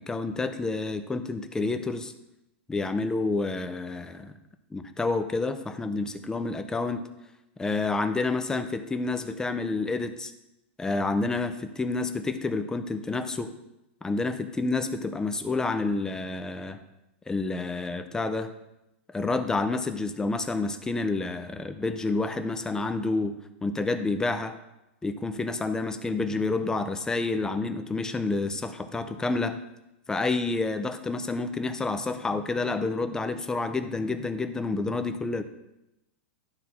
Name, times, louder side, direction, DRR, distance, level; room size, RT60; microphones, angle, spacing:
voice 1, 0.0-2.1 2.7-4.3 4.7-7.0 7.6-10.3 10.8-13.5 14.0-16.8 17.3-18.5 19.1-24.6 25.0-29.6 30.1-35.4, left 3 dB, 10° left, 9 dB, 0.6 m, -29 dB
11.5 x 4.1 x 5.8 m, 0.90 s
hypercardioid pair, 130°, 7 cm